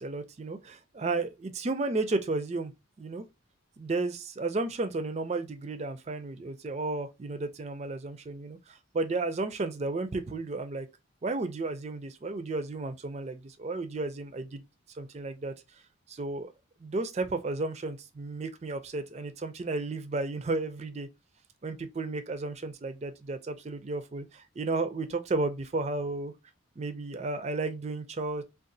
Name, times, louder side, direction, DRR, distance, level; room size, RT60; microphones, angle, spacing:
voice 1, 0.0-2.7 3.0-3.2 3.8-10.9 11.2-14.6 14.9-15.5 16.1-16.5 16.8-21.1 21.6-26.3 26.8-28.4, right 3 dB, 30° right, 0.4 m, -33 dB
3.7 x 2.3 x 2.6 m
head